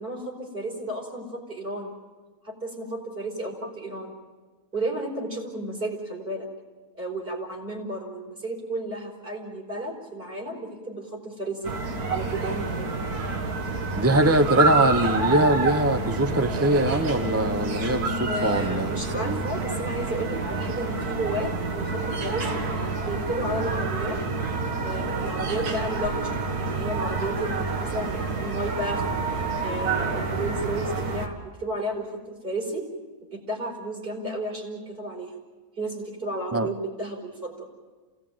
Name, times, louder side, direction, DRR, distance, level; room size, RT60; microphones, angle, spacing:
voice 1, 0.0-1.9 2.4-4.2 4.7-6.5 7.0-11.7 12.1-12.9 18.3-24.2 24.8-29.0 29.3-32.9 33.3-35.4 35.8-37.7, right 1 dB, 35° right, -1 dB, 5.1 m, -33 dB
sound 1, 11.6-31.3, right 3 dB, 80° right, 2.3 m, -28 dB
voice 2, 14.0-19.4 36.5-36.7, right 1 dB, 15° right, 9 dB, 0.5 m, -23 dB
28.0 x 18.0 x 8.9 m, 1.4 s
omnidirectional pair, 1.6 m